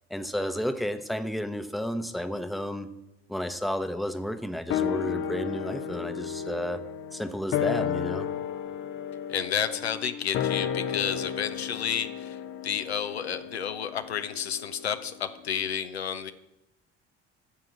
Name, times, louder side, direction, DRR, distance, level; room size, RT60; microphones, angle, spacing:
voice 1, 0.1-2.9 3.3-6.8 7.1-8.3, equal, ahead, 10 dB, 0.8 m, -32 dB
sound 1, 4.7-15.3 15.6-15.7, left 8 dB, 40° left, 0.7 m, -33 dB
voice 2, 9.3-16.3, left 8 dB, 80° left, 9 dB, 0.7 m, -31 dB
13.5 x 4.9 x 8.8 m, 0.91 s
figure-of-eight pair, 55°, 32 cm